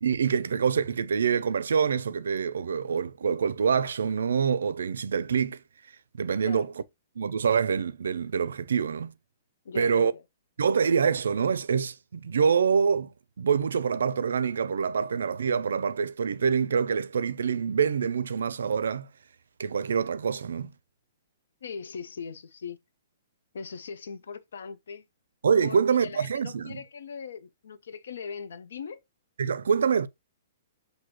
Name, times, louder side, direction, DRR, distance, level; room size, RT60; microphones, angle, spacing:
voice 1, 0.0-5.6 6.2-6.7 7.2-9.1 9.8-10.1 10.6-13.1 13.4-19.1 19.6-20.7 25.4-26.8 29.4-30.1, right 6 dB, 90° right, 0.4 m, -25 dB
voice 2, 9.6-10.2 21.6-22.8 23.5-25.1 25.6-29.0, left 6 dB, 80° left, 0.6 m, -40 dB
6.1 x 2.6 x 2.9 m
hypercardioid pair, 160°, 0 cm